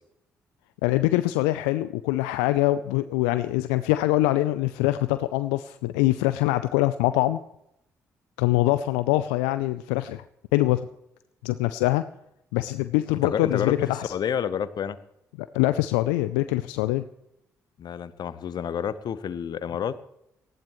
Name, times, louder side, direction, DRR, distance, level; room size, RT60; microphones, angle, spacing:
voice 1, 0.8-7.4 8.4-10.2 10.5-10.9 11.4-12.0 12.5-14.1 15.4-17.0, left 16 dB, 75° left, 13 dB, 0.5 m, -24 dB
voice 2, 13.2-15.0 17.8-20.0, left 8 dB, 55° left, 15 dB, 0.9 m, -29 dB
19.0 x 15.0 x 3.1 m, 0.81 s
hypercardioid pair, 40°, 8 cm